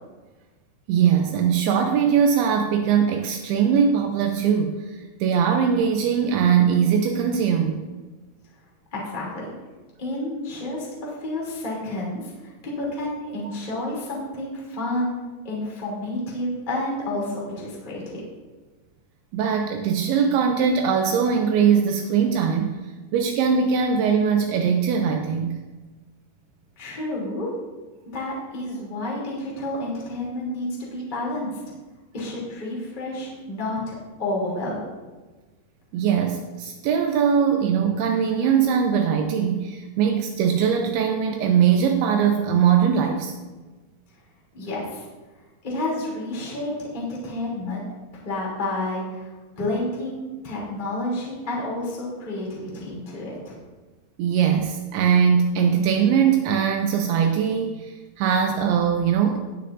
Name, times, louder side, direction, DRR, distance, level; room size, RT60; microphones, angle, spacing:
voice 1, 0.9-4.9 5.2-7.8 19.3-22.8 23.1-25.6 35.9-43.3 54.2-59.4, right 7 dB, 85° right, 4 dB, 2.2 m, -21 dB
voice 2, 8.9-9.5 10.0-15.1 15.4-18.2 26.8-27.5 28.1-31.6 32.1-34.9 44.5-45.0 45.6-47.8 48.2-53.6, left 1 dB, 15° left, -5 dB, 2.0 m, -30 dB
19.5 x 6.7 x 2.6 m, 1.2 s
omnidirectional pair, 5.3 m